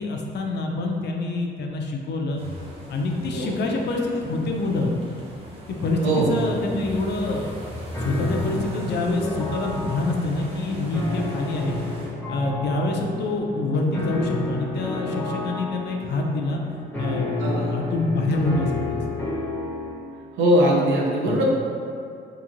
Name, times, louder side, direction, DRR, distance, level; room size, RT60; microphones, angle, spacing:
voice 1, 0.0-2.4 2.9-4.9 5.7-7.5 8.0-11.8 12.3-16.6 17.0-19.2 21.2-21.4, left 2 dB, 60° left, 1 dB, 0.4 m, -26 dB
sound 1, 2.4-12.1, equal, 30° right, 0.7 m, -38 dB
voice 2, 6.0-6.3 17.4-17.7 20.4-21.4, right 1 dB, 75° right, -4 dB, 0.5 m, -20 dB
sound 2, 7.9-19.9, left 2 dB, 10° left, 0.6 m, -31 dB
2.9 x 2.5 x 2.5 m, 2.4 s
cardioid pair, 90°, 20 cm